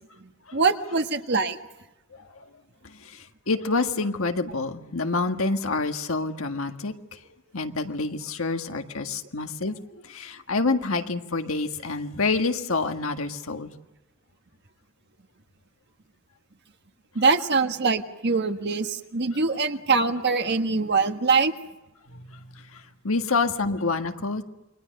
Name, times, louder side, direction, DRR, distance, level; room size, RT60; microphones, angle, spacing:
voice 1, 0.5-1.6 17.1-21.5, right 4 dB, 55° right, 7 dB, 1.5 m, -23 dB
voice 2, 2.1-2.5 2.8-7.2 7.5-13.7 22.1-24.4, left 3 dB, 90° left, 5 dB, 1.8 m, -28 dB
29.0 x 23.5 x 6.6 m, 0.94 s
head